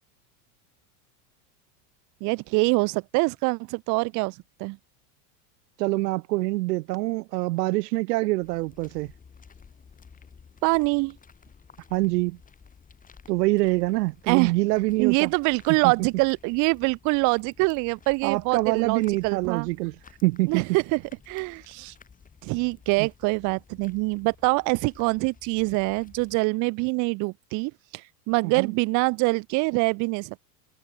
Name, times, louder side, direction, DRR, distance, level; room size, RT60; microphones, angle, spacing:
voice 1, 2.2-4.8 10.6-11.2 14.3-14.5 15.0-19.7 20.5-21.9 22.4-30.4, right 28 dB, 40° right, 0.7 m, -25 dB
voice 2, 5.8-9.1 11.9-12.4 13.3-15.3 15.8-15.9 18.2-19.9 20.2-20.7 23.0-23.1 28.6-28.7, right 21 dB, 80° right, 0.7 m, -25 dB
sound 1, 8.4-26.4, left 6 dB, 15° left, 4.9 m, -54 dB
supercardioid pair, 145°, 49 cm